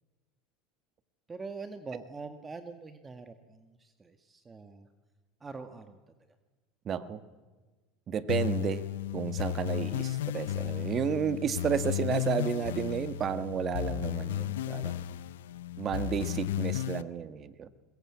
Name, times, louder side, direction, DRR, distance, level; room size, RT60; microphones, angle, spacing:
voice 1, 1.3-4.9 5.4-6.1, right 4 dB, 20° right, 8 dB, 1.6 m, -44 dB
voice 2, 6.8-7.2 8.1-8.8 9.1-15.0 15.8-17.7, right 8 dB, 40° right, 12 dB, 1.6 m, -32 dB
sound 1, 8.3-17.0, left 12 dB, 85° left, 0.7 m, -34 dB
22.0 x 20.5 x 8.7 m, 1.3 s
hypercardioid pair, 90°, 0 cm